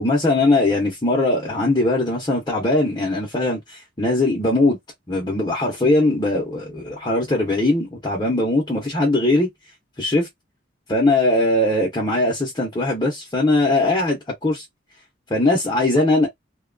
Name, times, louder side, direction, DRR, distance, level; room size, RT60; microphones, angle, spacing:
voice 1, 0.0-4.8 5.1-9.5 10.0-10.3 10.9-14.6 15.3-16.3, left 2 dB, 20° left, 0.7 m, -20 dB
2.7 x 2.2 x 2.5 m
head